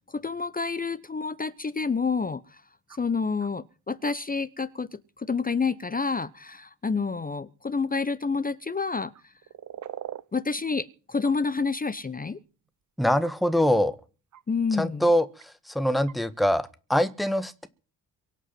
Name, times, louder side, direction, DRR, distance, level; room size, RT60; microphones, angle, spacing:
voice 1, 0.1-2.6 3.0-9.1 10.3-12.4 14.5-15.1, left 4 dB, 15° left, 0.9 m, -29 dB
sound 1, 2.9-3.0 3.4-3.5 4.1-4.2 6.7-6.8 9.1-10.2 11.2-11.4 12.7-12.8 13.2-13.3 14.3-14.4 15.4-15.5 16.1-16.2, right 10 dB, 35° right, 0.9 m, -40 dB
voice 2, 13.0-14.0 14.7-15.3 15.7-17.7, equal, ahead, 1.5 m, -23 dB
23.5 x 8.3 x 5.9 m
figure-of-eight pair, 50°, 49 cm